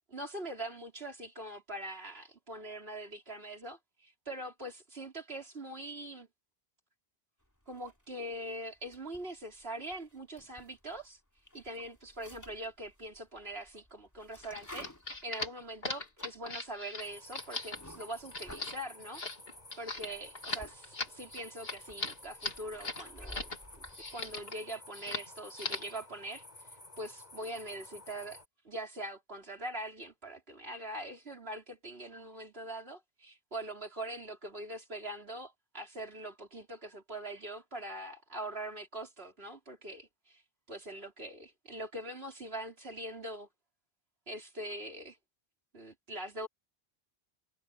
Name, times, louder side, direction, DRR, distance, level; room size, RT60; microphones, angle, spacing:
voice 1, 0.1-6.3 7.7-11.2 11.5-14.9 15.2-19.2 19.8-23.5 24.1-26.5 27.0-40.4 40.7-43.5 44.3-45.2 45.7-46.5, right 1 dB, 75° right, 4.5 m, -43 dB
sound 1, 7.6-8.3 8.8-11.1 11.4-18.8 19.5-20.8 21.0-24.5, left 1 dB, 15° left, 3.0 m, -54 dB
sound 2, 14.4-23.6 23.8-24.6 24.9-25.3 25.6-26.0, left 2 dB, 70° left, 3.0 m, -39 dB
sound 3, 17.0-28.5, left 2 dB, 40° left, 5.4 m, -53 dB
omnidirectional pair, 1.0 m